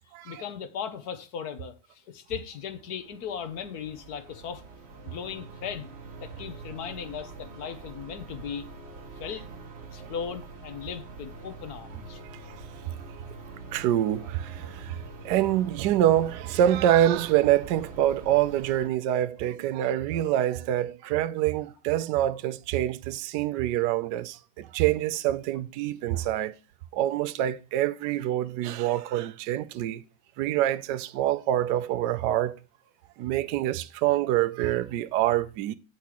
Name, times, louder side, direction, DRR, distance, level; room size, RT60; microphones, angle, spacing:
voice 1, 0.2-4.6 5.0-5.9 6.2-8.7 9.2-9.5 9.9-12.2, left 7 dB, 60° left, 1.2 m, -37 dB
sound 1, 2.4-18.9, right 3 dB, 40° right, 1.3 m, -44 dB
voice 2, 13.7-26.5 26.9-30.0 30.4-32.6 33.2-35.7, right 12 dB, 75° right, 1.0 m, -26 dB
8.4 x 4.7 x 6.0 m
omnidirectional pair, 2.2 m